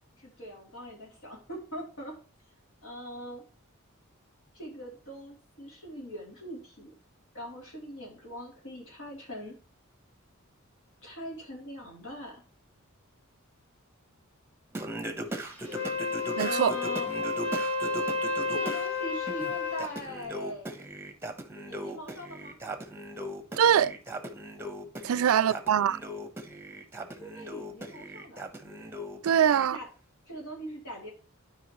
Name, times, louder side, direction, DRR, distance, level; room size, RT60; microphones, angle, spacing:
voice 1, 0.2-2.1 2.8-3.4 4.5-6.9 7.3-9.5 11.0-12.4 16.4-17.1 18.5-20.7 21.6-22.6 25.0-25.6 27.1-28.4 29.7-29.9 30.3-31.1, equal, 70° left, 3.2 m, -41 dB
Singing, 14.7-18.9 19.3-29.7, right 1 dB, 10° right, 0.9 m, -39 dB
Wind instrument woodwind instrument, 15.6-19.9, left 3 dB, 10° left, 1.7 m, -31 dB
voice 2, 16.4-16.7 23.6-23.9 25.0-26.0 29.2-29.8, right 9 dB, 85° right, 0.4 m, -23 dB
11.5 x 4.9 x 3.1 m
head